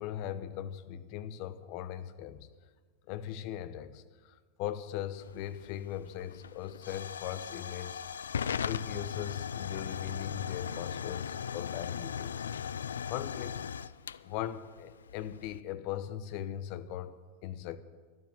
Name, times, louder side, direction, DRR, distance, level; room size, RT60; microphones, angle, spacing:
voice 1, 0.0-2.5 3.1-8.0 8.5-12.4 13.1-13.6 14.2-17.8, left 11 dB, 50° left, 0.9 m, -39 dB
Hiss / Fire / Tick, 5.2-15.6, left 7 dB, 80° left, 0.4 m, -38 dB
12.5 x 12.0 x 7.8 m
hypercardioid pair, 95°, 0 cm